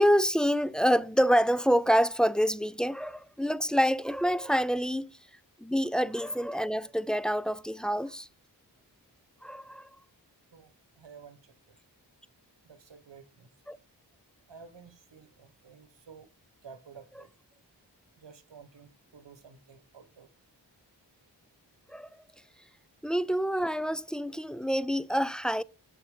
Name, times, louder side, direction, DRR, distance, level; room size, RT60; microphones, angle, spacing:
voice 1, 0.0-5.2 5.6-8.3 9.4-9.9 13.7-13.8 21.9-22.1 23.0-25.6, equal, ahead, 0.4 m, -27 dB
voice 2, 10.5-11.8 12.6-13.5 14.5-16.3 16.6-17.3 18.2-20.3, right 6 dB, 80° right, 1.2 m, -52 dB
6.9 x 6.7 x 5.1 m
wide cardioid pair, 50°, 43 cm